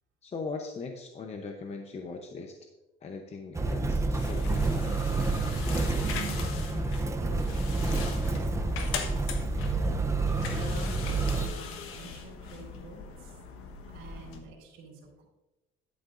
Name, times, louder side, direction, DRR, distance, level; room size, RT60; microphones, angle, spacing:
voice 1, 0.2-2.6 3.0-4.7, left 4 dB, 30° left, 4 dB, 0.8 m, -39 dB
Motor vehicle (road), 3.5-11.5, right 3 dB, 15° right, 0.7 m, -29 dB
sound 1, 4.2-14.4, left 6 dB, 80° left, 1.3 m, -40 dB
voice 2, 6.0-6.5 7.2-9.9 10.5-13.4 13.9-15.2, right 4 dB, 75° right, -8 dB, 3.4 m, -46 dB
11.0 x 9.3 x 2.6 m, 1.0 s
cardioid pair, 140°, 21 cm